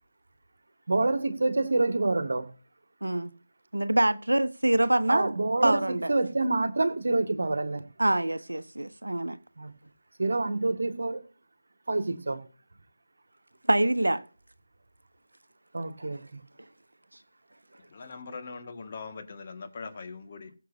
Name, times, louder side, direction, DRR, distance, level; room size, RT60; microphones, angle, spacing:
voice 1, 0.9-2.5 5.1-7.8 9.6-9.7 10.2-11.2 11.9-12.4 15.7-16.4, right 2 dB, 50° right, 1.9 m, -27 dB
voice 2, 3.0-3.3 3.7-5.3 5.6-6.1 8.0-9.4 13.7-14.2, right 1 dB, 70° right, 0.9 m, -25 dB
voice 3, 17.9-20.5, left 4 dB, 30° left, 1.9 m, -41 dB
21.0 x 7.5 x 2.7 m
figure-of-eight pair, 160°, 0 cm